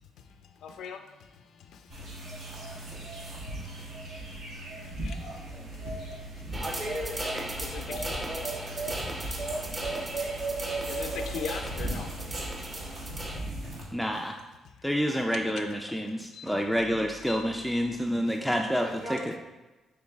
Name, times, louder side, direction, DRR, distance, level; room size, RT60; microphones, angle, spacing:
voice 1, 0.2-3.9 4.6-5.4 5.9-6.0 6.4-6.6 7.6-8.1 8.8-12.1 12.6-12.7 13.1-13.2 14.0-14.1 15.3-15.6 16.1-16.8 17.2-17.4 18.3-18.5, left 6 dB, 75° left, 7 dB, 0.4 m, -44 dB
sound 1, 1.9-13.8, right 2 dB, 75° right, 1.1 m, -36 dB
voice 2, 5.3-5.6 6.6-7.5 8.2-8.6 18.8-19.4, right 1 dB, 45° right, -1 dB, 1.1 m, -38 dB
sound 2, 6.5-13.4, right 1 dB, 30° right, 0.7 m, -38 dB
voice 3, 13.9-14.3 14.8-19.2, equal, ahead, 2 dB, 0.3 m, -28 dB
6.1 x 3.1 x 2.3 m, 1.1 s
cardioid pair, 75°, 0 cm